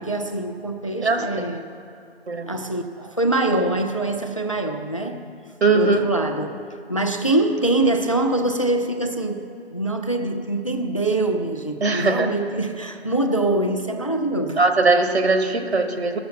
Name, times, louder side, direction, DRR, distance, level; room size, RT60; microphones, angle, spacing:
voice 1, 0.0-1.7 2.5-5.4 5.7-14.6, right 2 dB, 30° left, 0.4 m, -24 dB
voice 2, 5.6-6.0 11.8-12.3 14.6-16.2, right 3 dB, 80° right, 1.5 m, -19 dB
13.0 x 6.9 x 7.6 m
hypercardioid pair, 170°, 32 cm